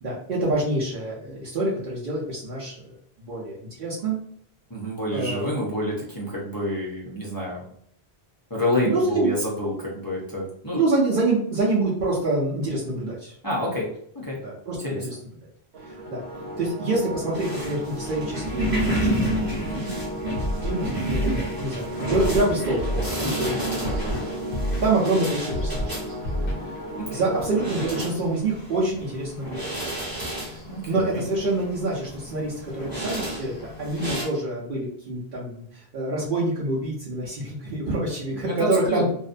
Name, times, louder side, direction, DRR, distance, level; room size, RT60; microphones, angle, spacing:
voice 1, 0.0-2.7 3.2-4.2 5.1-5.6 8.8-9.3 10.7-13.3 14.4-15.2 15.8-16.2 16.6-19.5 20.6-23.7 24.0-24.1 24.8-25.9 26.6-26.7 27.1-29.8 30.4-30.6 30.9-39.1, right 2 dB, 60° right, -6 dB, 0.7 m, -26 dB
voice 2, 4.7-7.6 8.5-10.8 13.4-13.9 14.1-14.4 14.8-15.1 19.5-19.9 23.2-23.7 27.0-27.2 30.7-31.3 38.3-39.1, left 1 dB, 30° left, -6 dB, 0.4 m, -28 dB
sound 1, 15.7-27.6, equal, 85° right, 0.9 m, -34 dB
sound 2, 17.3-34.2, right 1 dB, 20° right, 0.8 m, -31 dB
Scratching (performance technique), 20.3-20.7 21.1-21.4 22.1-22.4 22.8-23.1 23.8-24.2 24.5-24.9 25.5-25.8 26.2-26.5, equal, 65° left, 0.7 m, -27 dB
2.6 x 2.1 x 2.4 m, 0.66 s
omnidirectional pair, 1.1 m